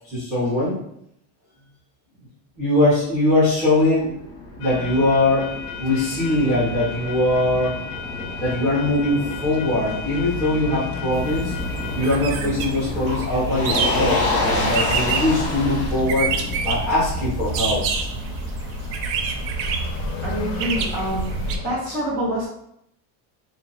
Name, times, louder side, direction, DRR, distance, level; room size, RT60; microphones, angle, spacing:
voice 1, 0.0-0.7 2.6-4.1 4.6-5.5 5.8-7.8 8.4-11.5 11.9-16.3 16.6-17.8, left 1 dB, 5° right, -10 dB, 1.1 m, -21 dB
Motor vehicle (road), 3.5-18.5, left 2 dB, 25° left, 1.3 m, -30 dB
sound 1, 4.6-21.8, left 6 dB, 60° left, 0.6 m, -34 dB
sound 2, 11.1-21.6, right 5 dB, 50° right, 0.5 m, -28 dB
voice 2, 20.2-21.3 21.6-22.5, equal, 30° right, -9 dB, 1.3 m, -26 dB
2.7 x 2.7 x 4.1 m, 0.75 s
cardioid pair, 175°, 46 cm